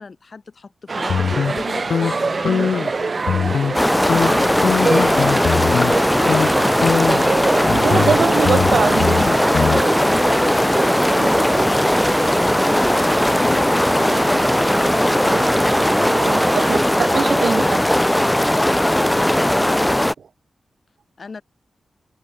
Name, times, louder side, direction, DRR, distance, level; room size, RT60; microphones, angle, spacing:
voice 1, 0.0-3.6 4.1-7.2 8.0-8.8 10.0-11.8 13.1-16.2 17.5-18.6 18.9-20.1 21.2-21.4, left 4 dB, 45° left, 6.3 m, -35 dB
sound 1, 0.9-16.8, right 4 dB, 40° right, 0.7 m, -26 dB
sound 2, 1.1-3.0 3.2-3.8 4.1-6.0 6.3-6.5 6.8-9.8, left 7 dB, 80° left, 0.7 m, -22 dB
sound 3, 3.7-20.1, left 1 dB, 5° left, 0.7 m, -18 dB
voice 2, 7.7-9.3 11.2-11.3 16.3-17.8, right 6 dB, 75° right, 0.4 m, -23 dB
wide cardioid pair, 100°, 0 cm